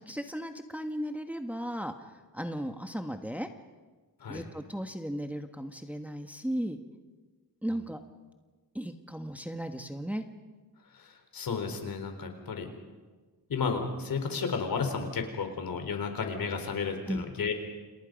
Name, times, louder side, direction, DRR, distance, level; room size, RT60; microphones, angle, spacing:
voice 1, 0.1-3.5 4.3-6.8 7.6-8.0 8.7-10.2 17.1-17.2, equal, 5° right, 5 dB, 1.4 m, -36 dB
voice 2, 10.9-12.7 13.5-17.5, left 5 dB, 70° left, 6 dB, 4.2 m, -33 dB
29.5 x 28.5 x 5.3 m, 1.3 s
wide cardioid pair, 125°, 37 cm